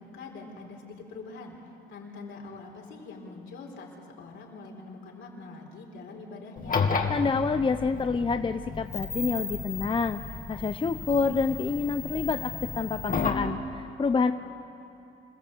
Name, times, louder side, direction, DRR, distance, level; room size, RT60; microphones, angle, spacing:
voice 1, 0.0-6.9 14.2-14.3, left 3 dB, 75° left, 0 dB, 4.4 m, -44 dB
sound 1, 6.6-13.5, left 5 dB, 45° left, 2.2 m, -32 dB
voice 2, 7.1-10.2 10.5-14.3, left 4 dB, 25° left, 9 dB, 0.7 m, -28 dB
27.5 x 16.0 x 8.1 m, 2.7 s
cardioid pair, 90°, 20 cm